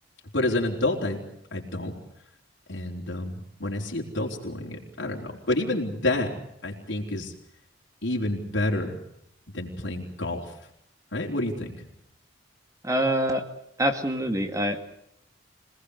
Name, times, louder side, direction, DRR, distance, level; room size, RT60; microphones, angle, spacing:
voice 1, 0.3-1.2 1.5-2.0 2.7-6.3 6.6-7.3 8.0-9.0 9.5-10.5 11.1-11.7, left 2 dB, 65° left, -1 dB, 4.3 m, -29 dB
voice 2, 12.8-13.4 13.8-14.8, right 1 dB, 15° right, 6 dB, 2.2 m, -25 dB
26.5 x 19.0 x 8.3 m, 0.75 s
head